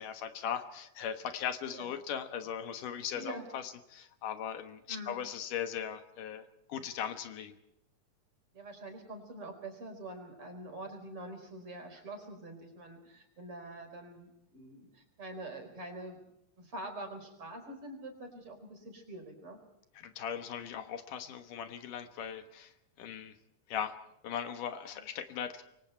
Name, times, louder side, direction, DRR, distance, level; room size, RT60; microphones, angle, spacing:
voice 1, 0.0-7.6 20.0-22.7 23.0-23.4 23.7-24.0 24.2-25.6, left 8 dB, 75° left, 9 dB, 2.8 m, -39 dB
voice 2, 3.1-3.5 4.9-5.2 8.5-16.2 16.6-19.6 24.9-25.0, right 1 dB, 40° right, 4 dB, 5.4 m, -45 dB
27.0 x 23.5 x 4.5 m, 0.83 s
omnidirectional pair, 3.9 m